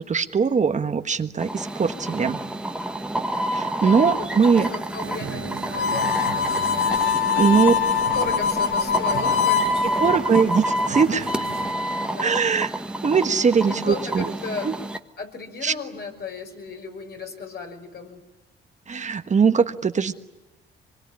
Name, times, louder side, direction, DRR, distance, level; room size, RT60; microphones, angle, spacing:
voice 1, 0.0-2.4 3.5-4.7 7.4-7.7 10.0-11.3 12.2-12.7 13.0-14.3 14.6-14.7 15.6-15.7 18.9-20.1, right 5 dB, 35° right, 8 dB, 1.4 m, -21 dB
sound 1, 1.4-15.0, right 1 dB, 5° right, 1.5 m, -28 dB
voice 2, 3.8-6.4 7.3-7.7 8.1-10.0 10.4-10.6 11.1-11.5 12.0-12.4 13.6-14.7 15.2-18.2, left 4 dB, 55° left, 4 dB, 5.8 m, -35 dB
sound 2, 5.0-11.7, right 9 dB, 85° right, 3.0 m, -38 dB
Harmonica, 5.7-9.8, left 7 dB, 70° left, 1.6 m, -23 dB
25.0 x 22.0 x 9.9 m, 1.1 s
cardioid pair, 90°, 20 cm